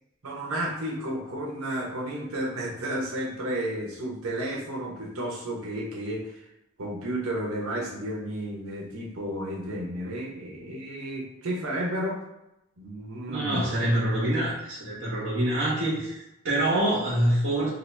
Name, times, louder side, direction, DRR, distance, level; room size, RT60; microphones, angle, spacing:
voice 1, 0.2-6.5 6.8-12.2 12.8-13.7, right 1 dB, 90° right, -3 dB, 0.8 m, -32 dB
voice 2, 13.3-17.7, right 1 dB, 65° right, -10 dB, 1.1 m, -26 dB
2.8 x 2.4 x 3.2 m, 0.87 s
head